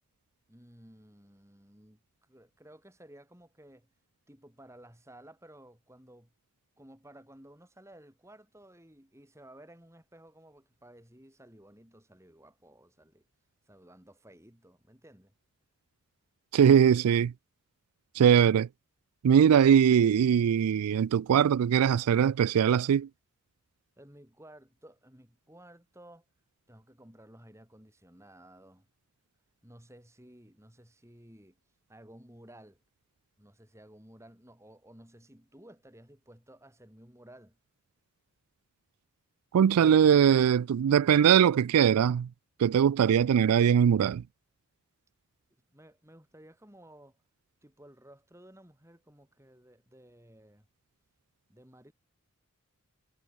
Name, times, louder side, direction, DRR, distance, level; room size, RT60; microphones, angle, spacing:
voice 1, 0.5-3.9 4.3-6.3 6.8-13.3 13.7-15.3 24.0-26.3 26.7-28.9 29.6-31.6 31.9-32.8 33.4-37.6 45.7-47.2 47.6-50.7 51.5-51.9, right 1 dB, 10° right, 3.9 m, -55 dB
voice 2, 16.5-17.3 18.1-18.7 19.2-23.1 39.5-42.3 42.6-44.2, right 8 dB, 85° right, 0.3 m, -21 dB
head